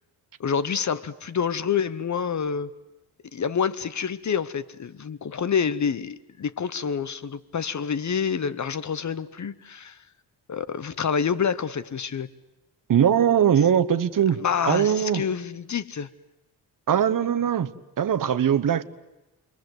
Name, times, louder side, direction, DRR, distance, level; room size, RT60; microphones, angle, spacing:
voice 1, 0.4-2.7 3.3-10.0 10.5-12.3 14.4-16.1, left 7 dB, 45° left, 1.0 m, -27 dB
voice 2, 12.9-14.4 14.7-15.2 16.9-17.7 18.0-18.8, right 9 dB, 50° right, 1.2 m, -21 dB
29.5 x 22.0 x 8.0 m
cardioid pair, 110°, 40 cm